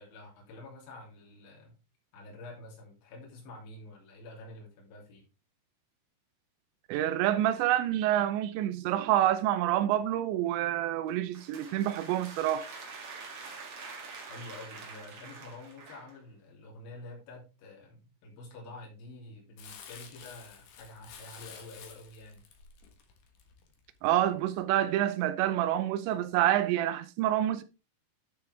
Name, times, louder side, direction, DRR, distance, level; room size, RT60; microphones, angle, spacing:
voice 1, 0.0-1.8 2.1-5.3 14.3-22.4, left 2 dB, 50° left, 4.2 m, -48 dB
voice 2, 6.9-12.7 24.0-27.6, right 12 dB, 85° right, 2.6 m, -27 dB
sound 1, 11.1-16.2, right 4 dB, 70° right, 1.4 m, -46 dB
Crumpling crinkling, 19.6-24.1 24.6-24.7, left 7 dB, 75° left, 1.9 m, -51 dB
9.7 x 6.8 x 3.3 m
omnidirectional pair, 5.9 m